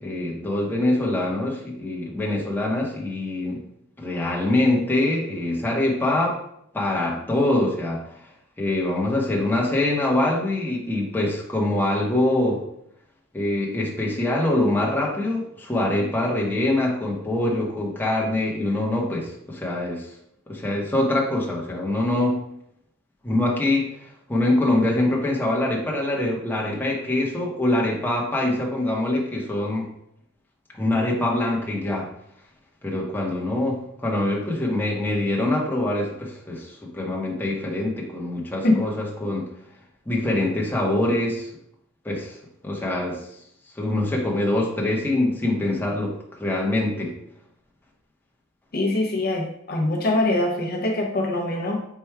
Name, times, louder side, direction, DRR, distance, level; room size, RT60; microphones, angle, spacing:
voice 1, 0.0-3.6 4.0-6.4 6.7-8.0 8.6-12.6 13.3-20.1 20.5-22.4 23.2-29.9 30.7-32.1 32.8-39.5 40.1-41.5 42.0-42.4 42.6-43.2 43.8-47.1, left 1 dB, 10° left, -3 dB, 0.8 m, -24 dB
voice 2, 48.7-51.9, left 2 dB, 45° left, 0 dB, 0.6 m, -23 dB
4.5 x 2.3 x 4.4 m, 0.72 s
head